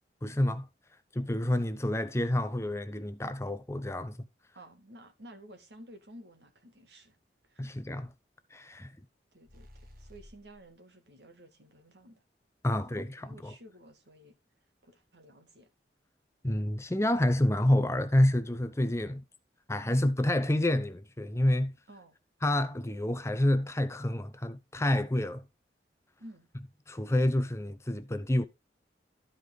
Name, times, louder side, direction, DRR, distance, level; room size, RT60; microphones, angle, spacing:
voice 1, 0.2-0.7 1.1-4.2 7.6-8.1 8.5-8.9 12.6-13.5 16.4-19.2 19.7-21.7 22.4-25.4 26.9-28.5, left 1 dB, 15° left, 0.7 m, -28 dB
voice 2, 4.6-7.2 7.4-7.8 9.3-9.7 10.0-12.2 12.7-14.4 14.8-15.7 21.9-22.2 26.2-26.5, right 1 dB, 75° right, 2.2 m, -53 dB
sound 1, 9.4-10.7, left 1 dB, 55° right, 1.8 m, -53 dB
13.0 x 5.1 x 3.9 m
head